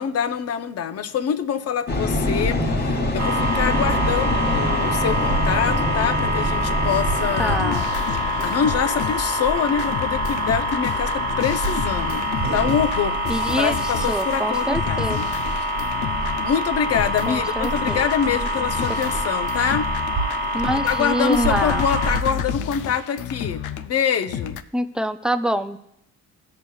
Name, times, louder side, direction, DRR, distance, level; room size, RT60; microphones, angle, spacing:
voice 1, 0.0-7.8 8.4-13.2 13.6-15.3 15.5-15.7 16.4-19.9 20.5-24.6, left 8 dB, 55° left, 9 dB, 0.7 m, -25 dB
sound 1, 1.9-20.7, left 2 dB, 30° left, 1.2 m, -29 dB
sound 2, 3.2-22.2, equal, 65° right, 1.3 m, -25 dB
sound 3, 6.9-24.6, left 9 dB, 85° left, 0.5 m, -31 dB
voice 2, 7.4-7.9 13.3-15.2 17.3-18.0 20.5-21.9 24.7-25.8, equal, 5° right, 9 dB, 0.5 m, -25 dB
18.5 x 6.7 x 2.3 m, 0.79 s
cardioid pair, 90°, 30 cm